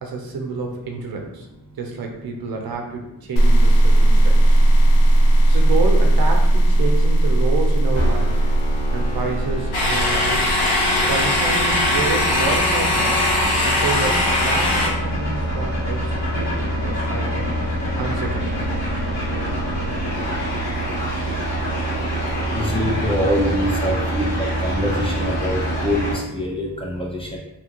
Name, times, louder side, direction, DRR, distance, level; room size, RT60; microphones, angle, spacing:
voice 1, 0.0-1.5 1.8-4.6 5.5-8.4 8.9-10.5 11.0-13.2 13.6-17.5 18.0-18.6, right 4 dB, 60° right, 2 dB, 0.6 m, -29 dB
sound 1, 3.4-10.5, right 1 dB, 55° left, 0.5 m, -16 dB
sound 2, 7.9-26.1, right 1 dB, 90° left, 1.4 m, -25 dB
sound 3, 9.7-14.9, left 2 dB, 70° left, 0.9 m, -20 dB
voice 2, 22.5-24.3 24.6-27.4, equal, 15° left, -2 dB, 0.7 m, -24 dB
2.9 x 2.4 x 2.9 m, 0.92 s
cardioid pair, 70°, 40 cm